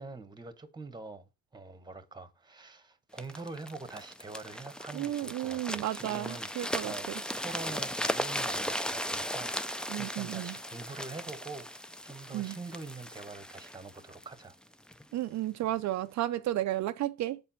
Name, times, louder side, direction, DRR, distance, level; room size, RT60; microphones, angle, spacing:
voice 1, 0.0-7.1 7.4-14.6, right 3 dB, 15° right, 1.0 m, -45 dB
sound 1, 3.2-15.0 15.6-15.8, equal, 5° left, 0.4 m, -37 dB
voice 2, 4.9-6.9 9.9-10.6 12.3-12.6 15.1-17.4, right 14 dB, 65° right, 0.5 m, -33 dB
6.9 x 4.4 x 5.5 m
cardioid pair, 90°, 30 cm